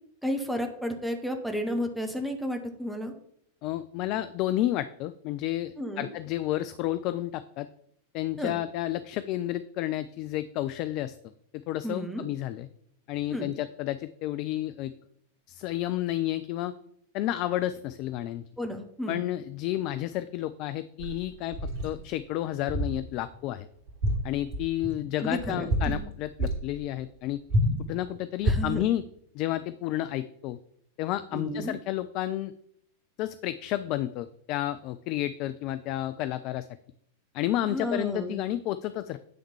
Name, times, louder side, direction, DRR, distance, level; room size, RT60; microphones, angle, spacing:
voice 1, 0.2-3.1 5.8-6.1 8.4-8.5 11.8-12.3 13.3-13.5 18.6-19.2 25.2-26.0 28.4-28.8 31.3-31.7 37.6-38.4, equal, ahead, 4 dB, 1.2 m, -32 dB
voice 2, 3.6-7.7 8.1-11.2 11.7-12.7 13.1-14.9 15.5-16.7 17.1-18.4 19.1-23.7 24.2-27.4 27.9-29.1 29.3-30.6 31.0-32.5 33.2-36.7 37.3-39.2, left 14 dB, 40° left, 13 dB, 0.4 m, -31 dB
sound 1, 21.0-22.0 22.7-23.0 23.3-23.5 23.9-25.0 25.4-26.1 26.4-26.6 27.5-27.9 28.4-28.8, equal, 40° right, 3.2 m, -28 dB
10.0 x 3.6 x 7.0 m, 0.70 s
figure-of-eight pair, 90°, 0 cm